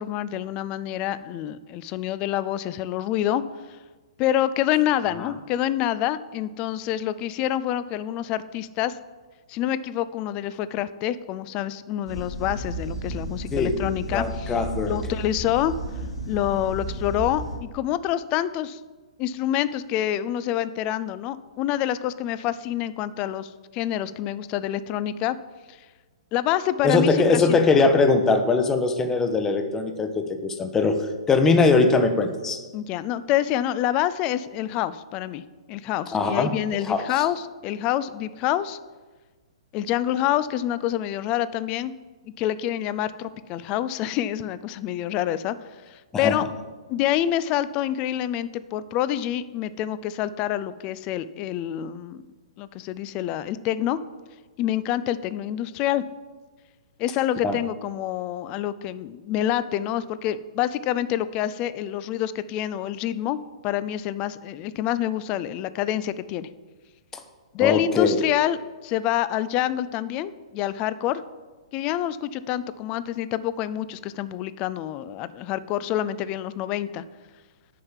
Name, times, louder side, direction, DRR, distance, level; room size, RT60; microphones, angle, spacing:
voice 1, 0.0-3.4 4.2-8.9 9.5-14.6 14.9-15.7 16.3-18.8 19.2-25.4 26.3-27.6 32.7-35.4 35.7-38.8 39.7-41.9 42.4-45.6 45.9-46.5 46.9-52.2 52.6-54.0 54.6-56.0 57.0-63.4 63.6-66.5 67.5-68.6 68.8-71.2 71.7-77.0, left 12 dB, 30° left, 15 dB, 0.4 m, -27 dB
sound 1, 12.1-17.6, right 1 dB, 80° left, 1.9 m, -33 dB
voice 2, 14.1-14.9 26.8-32.6 36.1-36.5 36.8-37.0 46.1-46.4 57.4-57.6 67.6-68.2, left 4 dB, 15° left, 7 dB, 0.8 m, -21 dB
6.5 x 5.6 x 7.3 m, 1.3 s
figure-of-eight pair, 115°, 3 cm